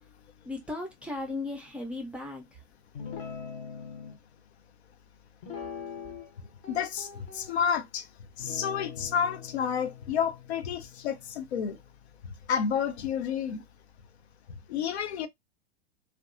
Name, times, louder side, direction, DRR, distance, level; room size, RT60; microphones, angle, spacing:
voice 1, 0.4-2.5, left 2 dB, 5° right, 0.4 m, -36 dB
Guitar, 2.9-4.2 5.4-6.3 6.6-7.8 8.4-11.9, left 7 dB, 35° left, 0.7 m, -43 dB
voice 2, 6.7-8.1 8.4-11.8 12.2-13.6 14.7-15.3, left 7 dB, 70° left, 0.5 m, -30 dB
2.6 x 2.2 x 2.4 m
figure-of-eight pair, 100°, 34 cm